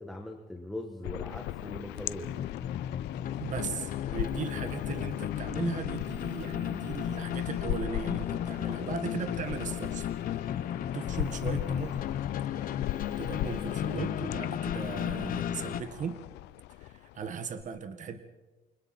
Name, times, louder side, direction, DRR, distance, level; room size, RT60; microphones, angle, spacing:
voice 1, 0.0-2.3 8.8-9.0, left 1 dB, ahead, 2 dB, 1.9 m, -40 dB
sound 1, 1.0-17.6, left 15 dB, 90° left, 0.6 m, -39 dB
sound 2, 2.2-15.8, left 10 dB, 55° left, 1.0 m, -34 dB
voice 2, 3.4-10.7 10.9-12.0 13.2-16.2 16.8-18.2, right 6 dB, 45° right, 8 dB, 1.7 m, -38 dB
29.0 x 25.0 x 4.4 m, 1.2 s
cardioid pair, 110°, 17 cm